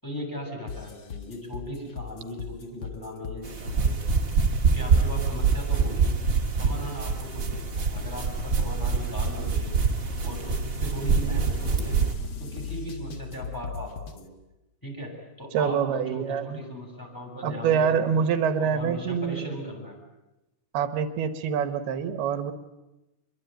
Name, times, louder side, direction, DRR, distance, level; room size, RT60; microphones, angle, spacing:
voice 1, 0.0-4.0 4.7-6.2 6.6-9.7 10.2-12.0 12.4-14.3 14.8-15.1 15.4-18.1 18.6-20.0, left 1 dB, 5° left, 2 dB, 7.2 m, -38 dB
sound 1, 0.7-14.2, left 6 dB, 45° left, 1.7 m, -38 dB
sound 2, 3.4-12.1, right 5 dB, 35° right, 2.6 m, -25 dB
voice 2, 15.5-16.6 17.4-19.5 20.7-22.5, right 7 dB, 85° right, 10 dB, 3.2 m, -26 dB
26.0 x 22.5 x 9.1 m, 0.99 s
omnidirectional pair, 4.4 m